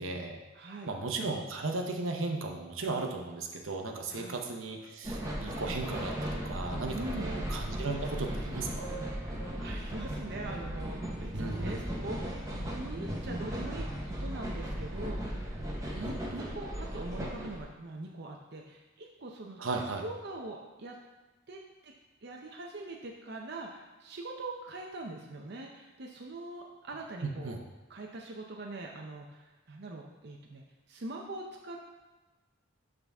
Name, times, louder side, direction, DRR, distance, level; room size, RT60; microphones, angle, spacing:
voice 1, 0.0-0.4 0.9-9.1 11.3-11.8 16.0-16.1 19.6-20.0 27.2-27.6, right 3 dB, 80° right, 3 dB, 0.9 m, -36 dB
voice 2, 0.5-0.9 4.1-4.4 6.9-7.3 9.2-15.6 15.9-21.0 21.5-21.9 22.2-27.6 27.9-32.0, right 2 dB, 55° right, 0 dB, 0.7 m, -43 dB
sound 1, 5.0-17.6, equal, 15° right, 1.1 m, -37 dB
11.0 x 3.9 x 3.5 m, 1.2 s
head